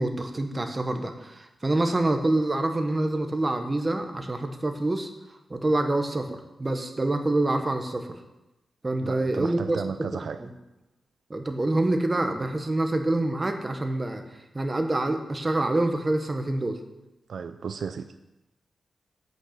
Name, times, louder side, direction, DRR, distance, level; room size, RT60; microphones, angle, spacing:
voice 1, 0.0-5.1 5.5-8.1 8.8-9.8 10.4-10.5 11.3-14.2 14.5-16.8, right 2 dB, 20° right, 5 dB, 1.2 m, -26 dB
voice 2, 9.0-10.4 17.3-18.2, right 6 dB, 65° right, 10 dB, 0.5 m, -34 dB
11.0 x 6.8 x 8.1 m, 0.98 s
wide cardioid pair, 160°, 0 cm